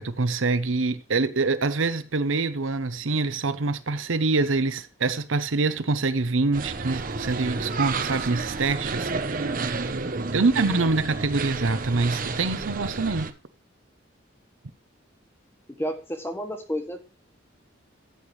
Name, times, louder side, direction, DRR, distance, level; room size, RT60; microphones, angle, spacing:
voice 1, 0.0-9.5 10.3-13.3, right 3 dB, 80° right, 0.8 m, -25 dB
sound 1, 6.5-13.3, right 4 dB, 45° right, 0.8 m, -31 dB
voice 2, 10.2-10.8 15.7-17.0, equal, 10° left, 1.3 m, -32 dB
14.0 x 8.1 x 3.2 m
head